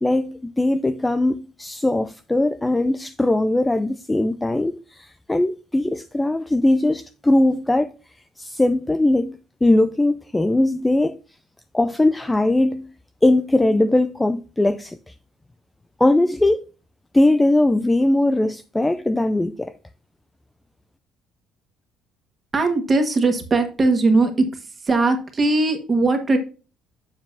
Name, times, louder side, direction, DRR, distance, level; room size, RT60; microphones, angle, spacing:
voice 1, 0.0-7.9 8.4-11.2 11.7-12.9 13.2-15.1 16.0-16.7 17.1-19.7, left 1 dB, 10° left, 0.3 m, -20 dB
voice 2, 22.5-24.5 24.9-26.4, right 3 dB, 20° right, 1.4 m, -19 dB
7.4 x 7.1 x 2.6 m
cardioid pair, 165°, 0 cm